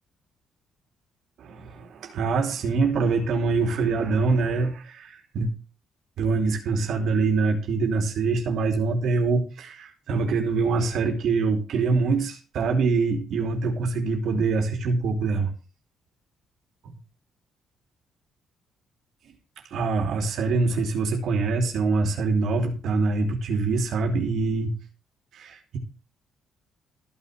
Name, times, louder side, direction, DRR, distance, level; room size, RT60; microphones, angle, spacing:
voice 1, 1.4-5.5 6.2-15.5 19.7-24.7 25.3-25.8, right 4 dB, 75° right, 3 dB, 2.9 m, -24 dB
14.5 x 5.7 x 7.3 m, 0.32 s
cardioid pair, 90°, 0 cm